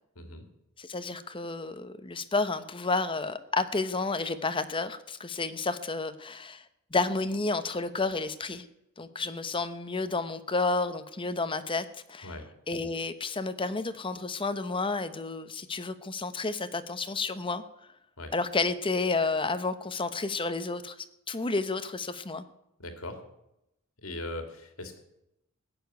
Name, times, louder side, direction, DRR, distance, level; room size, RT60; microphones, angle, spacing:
voice 1, 0.8-6.6 6.9-8.6 9.0-12.4 12.7-17.6 18.3-21.0 21.3-22.4, left 3 dB, 25° left, 11 dB, 0.9 m, -31 dB
voice 2, 22.8-23.2 24.0-25.0, left 1 dB, 80° left, 6 dB, 2.5 m, -39 dB
16.0 x 6.9 x 9.4 m, 0.83 s
head